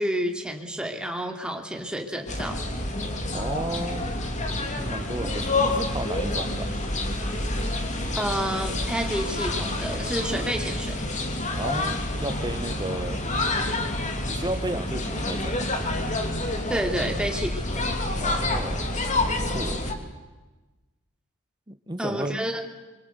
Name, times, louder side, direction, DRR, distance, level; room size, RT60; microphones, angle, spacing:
voice 1, 0.0-2.6 8.1-11.0 16.5-17.9 22.0-22.6, equal, 5° right, 3 dB, 2.8 m, -30 dB
sound 1, 2.3-19.9, left 2 dB, 35° left, 3.0 m, -28 dB
voice 2, 3.3-4.0 4.6-6.7 11.6-13.2 14.3-15.7 18.2-18.9 19.5-19.8 21.7-22.4, right 1 dB, 20° right, 10 dB, 1.3 m, -33 dB
26.0 x 25.0 x 8.2 m, 1.2 s
head